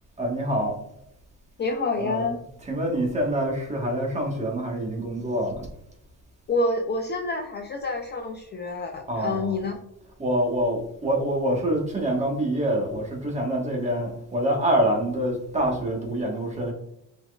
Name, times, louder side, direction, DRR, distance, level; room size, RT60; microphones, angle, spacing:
voice 1, 0.2-0.8 2.0-2.3 2.6-5.7 9.1-9.6 10.2-16.7, right 1 dB, 20° right, 1.2 m, -26 dB
voice 2, 1.6-2.4 6.5-9.8, left 2 dB, 30° left, 0.4 m, -28 dB
5.8 x 4.0 x 2.3 m
cardioid pair, 165°, 37 cm